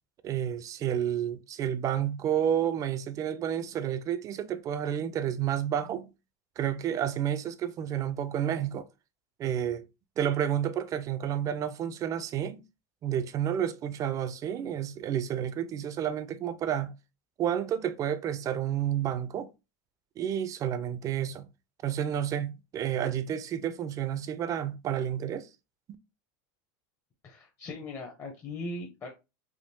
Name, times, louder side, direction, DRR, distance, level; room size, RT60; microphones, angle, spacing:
voice 1, 0.2-6.1 6.6-8.9 9.4-9.9 10.2-12.6 13.0-16.9 17.4-19.5 20.2-21.5 21.8-25.5, right 10 dB, 35° right, 0.4 m, -30 dB
voice 2, 27.2-29.1, left 2 dB, 30° left, 0.7 m, -39 dB
3.6 x 2.3 x 2.6 m
supercardioid pair, 115°, 10 cm